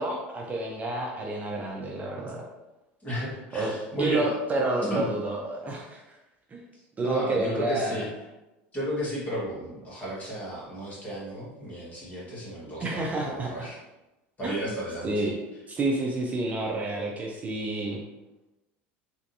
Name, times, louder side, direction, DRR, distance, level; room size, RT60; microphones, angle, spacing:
voice 1, 0.0-2.4 3.5-3.7 4.0-6.0 6.5-6.6 7.0-8.0 12.8-13.7 14.4-14.6 15.0-15.4 15.7-18.0, right 2 dB, 25° right, -1 dB, 0.5 m, -29 dB
voice 2, 3.0-4.3 4.7-5.1 6.7-8.1 8.7-13.8 14.4-15.3, right 1 dB, 25° left, -5 dB, 1.5 m, -34 dB
3.3 x 2.6 x 2.7 m, 1.0 s
supercardioid pair, 95°, 6 cm